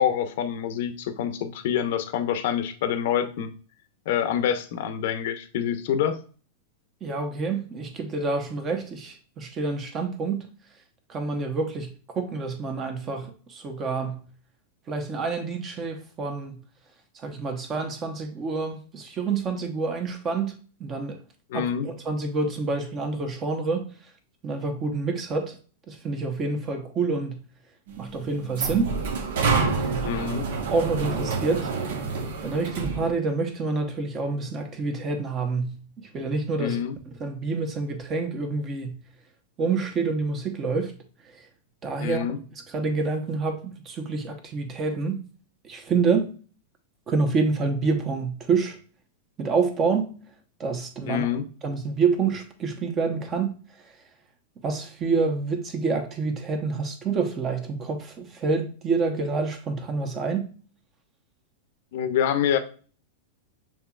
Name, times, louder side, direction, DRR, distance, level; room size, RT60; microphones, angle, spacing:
voice 1, 0.0-3.5 4.1-6.2 21.5-21.9 30.0-30.5 36.6-37.0 42.0-42.4 51.1-51.5 61.9-62.6, left 9 dB, 60° left, 0.7 m, -26 dB
voice 2, 7.0-10.4 11.1-11.9 12.1-14.2 14.9-16.6 17.2-20.5 20.8-21.2 21.5-23.9 24.4-25.6 25.9-27.4 28.0-29.0 29.8-30.0 30.7-31.7 32.4-35.8 36.1-36.8 37.2-39.0 39.6-40.9 41.4-41.5 41.8-42.3 42.7-45.2 45.6-46.3 47.1-48.8 49.4-50.2 50.6-51.3 51.6-53.6 54.6-60.5, right 4 dB, 30° right, 1.0 m, -27 dB
sound 1, 27.9-33.1, right 4 dB, 65° right, 0.9 m, -28 dB
6.7 x 2.9 x 2.4 m
hypercardioid pair, 105°, 0 cm